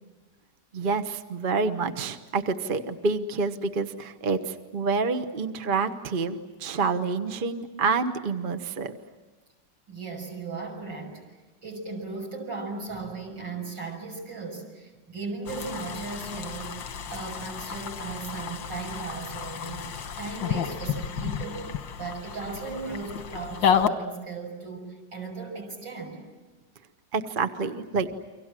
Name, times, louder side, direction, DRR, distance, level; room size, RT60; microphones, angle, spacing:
voice 1, 0.7-9.0 27.1-28.1, right 4 dB, 35° right, 8 dB, 1.1 m, -28 dB
voice 2, 9.9-11.2 11.6-16.8 17.1-19.9 20.2-26.2, right 4 dB, 75° right, 1 dB, 7.2 m, -37 dB
sound 1, 15.5-23.9, left 8 dB, 80° left, 2.0 m, -31 dB
30.0 x 24.5 x 7.5 m, 1.3 s
omnidirectional pair, 2.0 m